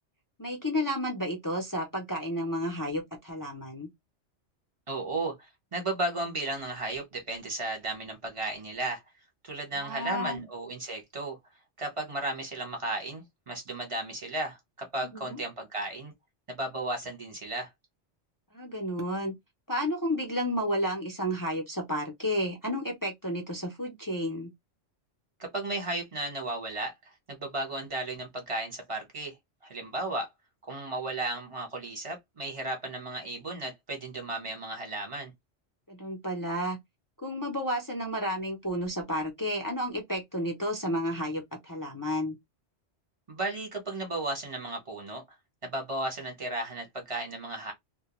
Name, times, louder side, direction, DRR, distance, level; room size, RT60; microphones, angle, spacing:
voice 1, 0.4-3.9 9.8-10.4 15.1-15.4 18.5-19.3 19.7-24.5 35.9-36.8 37.2-42.4, equal, 25° left, 0.5 m, -31 dB
voice 2, 4.9-9.0 9.4-11.4 11.8-16.1 16.5-17.7 25.4-29.4 29.6-30.3 30.6-35.3 43.3-45.2 45.6-47.7, right 2 dB, 30° right, 0.9 m, -34 dB
2.2 x 2.2 x 2.9 m
omnidirectional pair, 1.2 m